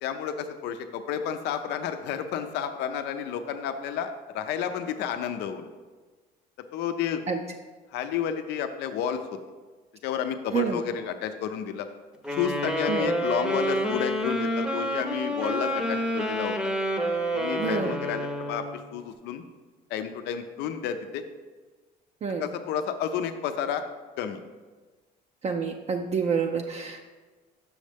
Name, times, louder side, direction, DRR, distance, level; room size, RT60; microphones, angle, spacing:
voice 1, 0.0-5.7 6.7-7.2 7.9-9.2 10.0-11.9 12.3-16.6 17.3-19.4 19.9-21.2 22.4-23.9 24.2-24.4, left 8 dB, 85° left, 8 dB, 0.6 m, -31 dB
sound 1, 12.2-18.8, equal, 5° right, 0.7 m, -28 dB
voice 2, 17.6-18.0 22.2-22.5 25.4-27.0, right 6 dB, 40° right, 3 dB, 0.5 m, -28 dB
6.4 x 6.3 x 3.4 m, 1.3 s
cardioid pair, 110°, 17 cm